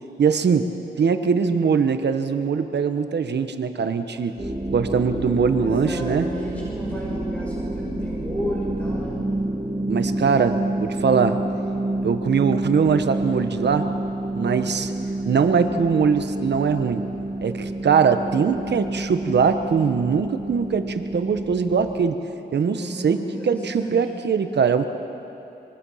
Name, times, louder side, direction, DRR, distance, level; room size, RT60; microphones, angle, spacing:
voice 1, 0.2-0.7 1.0-4.3 4.7-6.3 9.9-11.4 12.0-13.9 14.3-14.9 15.3-17.1 17.4-22.2 22.5-24.9, right 6 dB, 80° right, 8 dB, 1.2 m, -21 dB
sound 1, 4.4-22.0, right 1 dB, 20° right, 2.1 m, -29 dB
voice 2, 5.6-9.2 14.4-14.7 22.6-24.0, equal, 10° left, -6 dB, 6.5 m, -33 dB
25.0 x 23.5 x 5.7 m, 2.9 s
cardioid pair, 70°, 17 cm